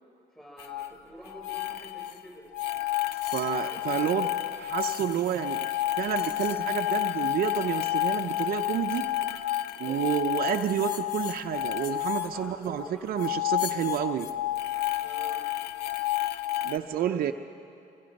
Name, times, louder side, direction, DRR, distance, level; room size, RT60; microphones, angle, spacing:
voice 1, 0.3-2.5 3.6-4.8 9.8-10.1 12.3-13.3 15.0-15.4 16.9-17.3, equal, 5° left, -1 dB, 7.3 m, -47 dB
sound 1, 0.6-0.9 1.3-2.2 2.5-12.9 13.1-16.8, left 14 dB, 75° left, 0.9 m, -30 dB
voice 2, 3.3-4.3 4.6-5.7 6.0-9.1 9.8-14.3 16.6-17.3, right 10 dB, 60° right, 5 dB, 0.7 m, -29 dB
26.0 x 25.0 x 5.4 m, 2.6 s
cardioid pair, 110°, 17 cm